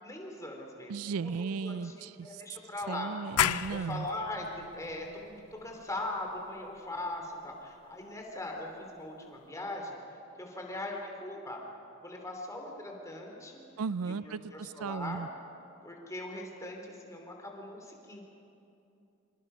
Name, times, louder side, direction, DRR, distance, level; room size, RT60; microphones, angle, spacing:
voice 1, 0.0-3.1 3.7-11.6 12.0-13.6 14.0-15.3 15.8-18.2, left 2 dB, 15° left, 1 dB, 3.0 m, -40 dB
voice 2, 0.9-2.4 2.9-4.1 13.8-15.3, right 5 dB, 80° right, 18 dB, 0.4 m, -36 dB
sound 1, 3.4-8.8, left 9 dB, 90° left, 0.6 m, -36 dB
25.5 x 24.5 x 5.6 m, 2.7 s
head